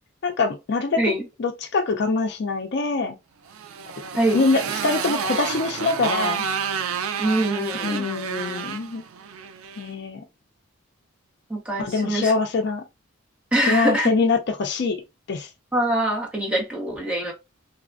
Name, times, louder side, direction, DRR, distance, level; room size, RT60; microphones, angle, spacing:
voice 1, 0.2-1.0 1.4-3.2 4.3-6.4 7.8-9.0 9.8-10.2 11.8-12.8 13.7-15.0 15.3-15.5, left 4 dB, 50° left, 0.4 m, -24 dB
Motorcycle, 3.5-9.9, right 7 dB, 80° right, 0.4 m, -30 dB
voice 2, 4.1-4.5 7.2-8.1 11.5-12.3 13.5-14.1 15.7-17.3, right 1 dB, 5° right, 0.7 m, -24 dB
3.2 x 2.1 x 2.4 m
head